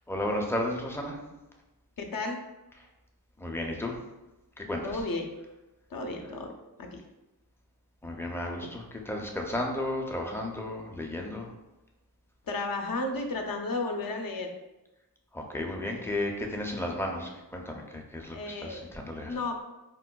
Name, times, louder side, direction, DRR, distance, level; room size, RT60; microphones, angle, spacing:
voice 1, 0.1-1.2 3.4-3.9 4.6-5.0 8.0-11.5 15.3-19.4, left 1 dB, 5° left, 1 dB, 0.4 m, -33 dB
voice 2, 2.0-2.4 4.8-5.3 5.9-6.5 6.8-7.0 8.6-8.7 12.5-14.5 18.3-18.9 19.3-19.6, left 2 dB, 60° left, 3 dB, 0.5 m, -33 dB
4.4 x 2.2 x 2.2 m, 1.0 s
wide cardioid pair, 65°, 39 cm